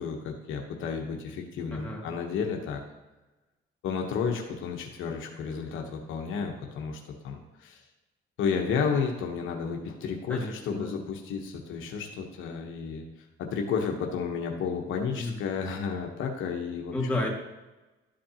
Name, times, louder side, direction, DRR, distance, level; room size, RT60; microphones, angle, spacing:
voice 1, 0.0-2.8 3.8-7.8 8.4-13.1 13.4-16.9, left 6 dB, 80° left, 2 dB, 1.0 m, -32 dB
voice 2, 1.7-2.1 10.3-11.0 15.1-15.3 16.9-17.3, left 2 dB, 5° left, -4 dB, 2.3 m, -31 dB
12.0 x 5.1 x 2.9 m, 1.1 s
cardioid pair, 90°, 20 cm